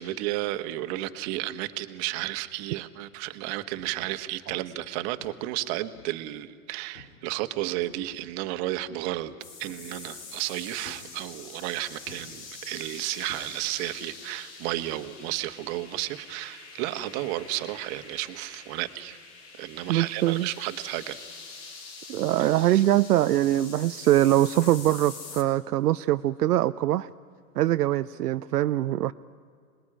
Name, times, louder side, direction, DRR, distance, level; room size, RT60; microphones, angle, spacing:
voice 1, 0.0-9.3 9.6-19.2 19.6-21.2 22.4-22.8, right 16 dB, 45° right, 10 dB, 1.4 m, -33 dB
sound 1, 3.0-3.2 3.8-4.2 4.5-4.9 5.2-6.3 6.9-7.3 7.6-8.5 9.7-10.2 10.8-11.7 12.0-13.9 14.2-14.6 16.7-16.8, left 3 dB, 85° left, 3.9 m, -52 dB
sound 2, 9.4-25.4, left 4 dB, 35° left, 3.6 m, -45 dB
voice 2, 19.9-20.5 22.1-27.1 27.6-29.1, right 14 dB, 80° right, 12 dB, 0.6 m, -23 dB
25.5 x 20.5 x 10.0 m, 2.1 s
hypercardioid pair, 120°, 46 cm